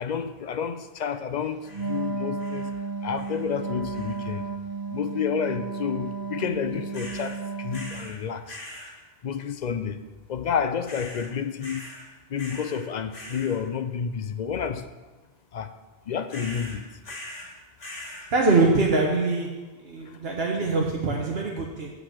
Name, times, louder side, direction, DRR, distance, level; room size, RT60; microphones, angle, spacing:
voice 1, 0.0-2.7 3.0-4.4 4.9-8.6 9.2-10.0 10.3-11.8 12.3-14.8 15.5-15.7 16.1-16.8, left 7 dB, 55° left, 9 dB, 0.6 m, -30 dB
sound 1, 1.6-2.0 2.4-2.8 3.1-3.5 3.9-4.3 6.9-7.4 7.7-8.2 8.4-8.9 10.8-11.3 11.6-12.1 12.4-12.8 13.1-13.6 16.3-17.5 17.8-18.3, left 1 dB, 70° left, 2.1 m, -42 dB
Wind instrument woodwind instrument, 1.7-8.2, right 4 dB, 40° right, 0.3 m, -33 dB
voice 2, 18.3-19.5 19.8-21.9, right 3 dB, 70° right, -1 dB, 1.3 m, -23 dB
9.4 x 4.7 x 7.4 m, 1.2 s
omnidirectional pair, 1.1 m